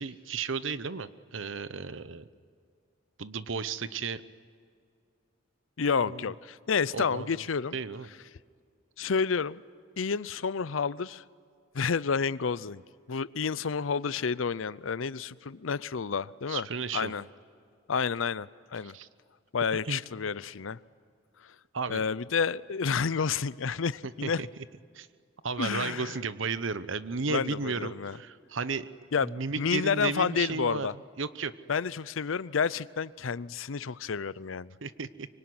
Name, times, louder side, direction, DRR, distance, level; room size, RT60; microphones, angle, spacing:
voice 1, 0.0-2.3 3.2-4.2 6.1-6.3 6.9-7.4 7.7-8.1 16.5-17.1 18.8-19.1 19.9-20.0 21.7-22.0 24.0-24.5 24.9-25.1 25.4-28.9 29.2-30.9 31.2-31.5 34.8-35.3, right 4 dB, 70° right, 14 dB, 0.9 m, -34 dB
voice 2, 5.8-7.8 9.0-9.6 10.0-11.2 11.7-12.8 13.1-16.7 16.9-17.2 17.9-18.9 19.5-20.8 21.4-21.5 21.9-24.4 25.6-26.2 27.3-28.2 29.1-30.9 31.7-34.7, left 5 dB, 80° left, 19 dB, 0.6 m, -30 dB
25.0 x 24.5 x 9.6 m, 2.2 s
head